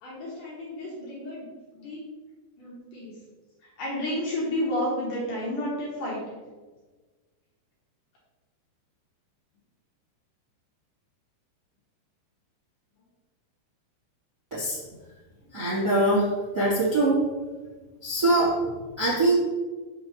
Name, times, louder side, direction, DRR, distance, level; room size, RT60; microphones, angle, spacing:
voice 1, 0.0-1.5 1.7-2.0 2.6-3.2 3.6-6.4, left 1 dB, 65° left, -5 dB, 2.3 m, -31 dB
voice 2, 15.5-17.2 18.0-18.5 19.0-19.3, right 1 dB, 30° right, -8 dB, 1.5 m, -23 dB
6.8 x 6.4 x 3.1 m, 1.3 s
omnidirectional pair, 4.8 m